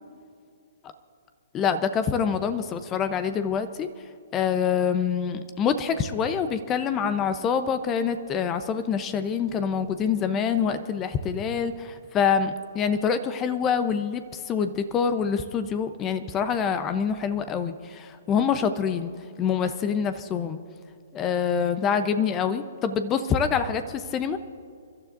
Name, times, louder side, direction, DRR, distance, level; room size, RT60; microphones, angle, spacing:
voice 1, 1.5-3.9 4.3-19.1 19.4-20.6 21.1-24.4, left 7 dB, 25° left, 11 dB, 0.7 m, -26 dB
28.5 x 12.5 x 2.6 m, 2.3 s
figure-of-eight pair, 125°, 0 cm